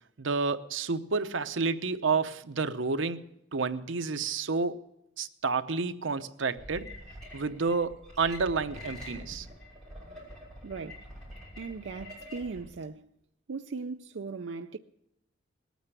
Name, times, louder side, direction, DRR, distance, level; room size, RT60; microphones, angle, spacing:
voice 1, 0.2-4.8 5.2-6.9 7.3-9.5, right 4 dB, 90° right, 0.8 m, -30 dB
sound 1, 6.6-12.6, left 1 dB, 5° left, 6.2 m, -46 dB
voice 2, 10.6-11.1 11.6-13.1 13.5-14.8, right 4 dB, 70° right, 0.5 m, -38 dB
19.5 x 9.3 x 6.8 m
head